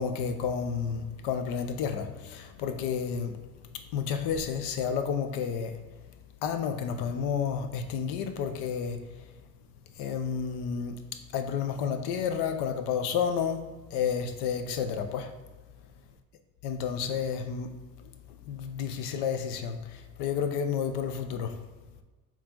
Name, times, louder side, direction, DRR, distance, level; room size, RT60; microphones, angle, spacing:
voice 1, 0.0-3.4 3.7-5.8 6.4-9.0 10.0-11.0 11.3-15.3 16.6-18.1 18.5-21.6, left 7 dB, 70° left, 0.7 m, -31 dB
4.5 x 3.0 x 3.7 m
hypercardioid pair, 65°, 41 cm